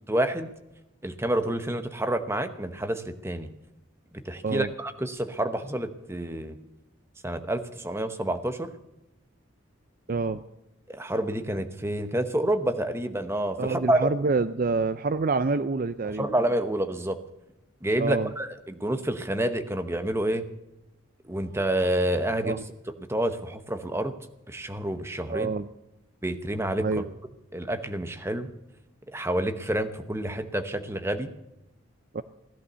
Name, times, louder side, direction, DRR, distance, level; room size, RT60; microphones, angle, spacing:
voice 1, 0.1-0.5 1.0-3.5 4.1-6.6 7.2-8.7 10.9-14.0 16.2-17.2 17.8-20.4 21.2-22.5 23.1-24.1 24.5-25.5 26.2-27.0 27.5-28.5 29.1-31.3, right 1 dB, 10° right, 8 dB, 0.9 m, -28 dB
voice 2, 10.1-10.4 13.6-16.3 18.0-18.3 22.3-22.6 25.3-25.7 26.8-27.1 32.1-32.2, right 3 dB, 40° right, 12 dB, 0.4 m, -27 dB
17.0 x 11.5 x 6.8 m, 0.92 s
head